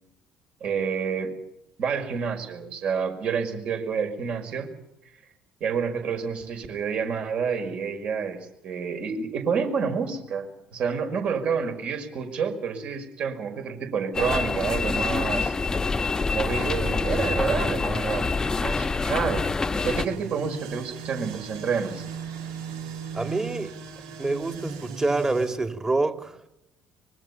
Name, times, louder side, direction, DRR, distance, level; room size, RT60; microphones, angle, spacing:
voice 1, 0.6-1.3 1.8-4.7 5.6-10.5 10.7-15.5 16.3-18.3 18.6-19.4 19.8-22.0, right 6 dB, 50° right, 5.5 m, -28 dB
sound 1, 14.1-20.1, left 4 dB, 25° left, 1.1 m, -26 dB
sound 2, 19.7-25.6, right 6 dB, 70° right, 3.1 m, -38 dB
voice 2, 23.1-23.8 24.2-26.5, right 2 dB, 20° right, 2.5 m, -26 dB
25.0 x 22.0 x 5.7 m
figure-of-eight pair, 55°, 3 cm